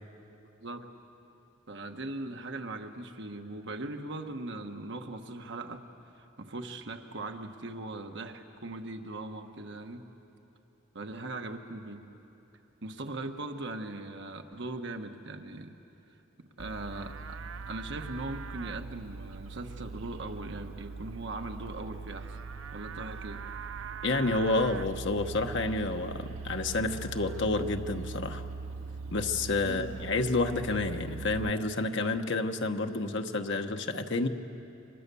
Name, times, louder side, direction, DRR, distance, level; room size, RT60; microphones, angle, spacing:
voice 1, 1.7-5.8 6.1-10.0 10.9-12.0 12.8-15.7 16.6-17.4 17.7-22.4 22.7-23.4 29.6-29.9, right 2 dB, 65° right, 5 dB, 1.4 m, -39 dB
Livestock farm animals working animals, 16.6-31.5, right 4 dB, 85° right, 0.5 m, -41 dB
voice 2, 24.0-28.4 29.1-34.3, left 2 dB, 65° left, 5 dB, 1.2 m, -29 dB
28.5 x 25.0 x 7.0 m, 2.9 s
head